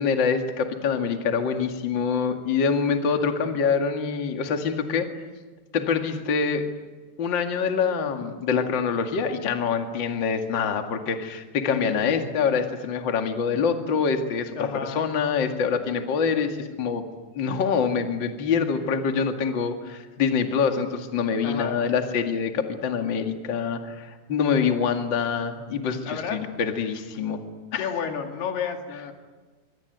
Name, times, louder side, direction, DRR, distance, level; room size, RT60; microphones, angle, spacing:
voice 1, 0.0-5.1 5.7-6.6 7.2-17.0 17.3-27.4 27.7-27.9, left 6 dB, 35° left, 5 dB, 2.1 m, -25 dB
voice 2, 11.7-12.2 14.6-15.0 21.4-21.8 26.0-26.4 27.8-29.1, left 6 dB, 90° left, 4 dB, 4.5 m, -31 dB
26.0 x 24.5 x 9.3 m, 1.3 s
omnidirectional pair, 4.5 m